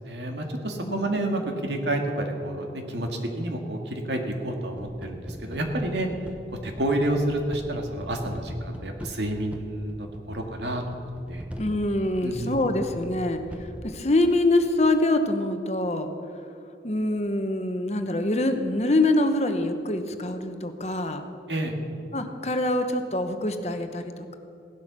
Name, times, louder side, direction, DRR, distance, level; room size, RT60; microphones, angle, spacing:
voice 1, 0.0-6.1 6.6-10.8 11.3-11.4 12.2-12.6 21.5-21.7, right 1 dB, 80° right, 3 dB, 2.0 m, -29 dB
sound 1, 4.7-14.0, equal, 5° right, 1.0 m, -41 dB
voice 2, 11.6-16.1 16.8-21.2 22.1-24.4, left 1 dB, 35° left, 7 dB, 1.0 m, -25 dB
16.5 x 12.0 x 6.1 m, 2.7 s
head